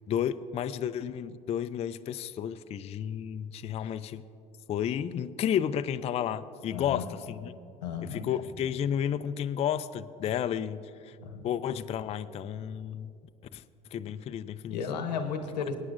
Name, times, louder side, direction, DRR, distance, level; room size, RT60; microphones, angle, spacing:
voice 1, 0.1-4.2 4.7-7.5 8.1-11.2 11.4-13.1 13.5-13.6 13.9-14.8, left 9 dB, 30° left, 11 dB, 0.3 m, -32 dB
voice 2, 6.7-7.1 7.8-8.2 11.2-11.5 14.7-15.7, left 6 dB, 85° left, 7 dB, 1.0 m, -34 dB
23.0 x 9.0 x 2.5 m, 2.5 s
hypercardioid pair, 75°, 21 cm